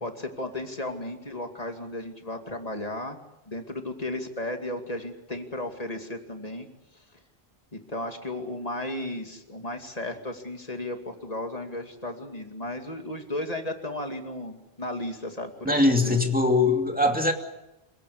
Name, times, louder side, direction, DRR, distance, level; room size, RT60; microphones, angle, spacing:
voice 1, 0.0-3.2 3.5-6.7 7.7-16.2, left 1 dB, 40° left, 5 dB, 2.6 m, -34 dB
voice 2, 15.7-17.3, left 2 dB, 10° right, 3 dB, 2.6 m, -21 dB
27.0 x 17.0 x 8.5 m, 0.95 s
omnidirectional pair, 1.0 m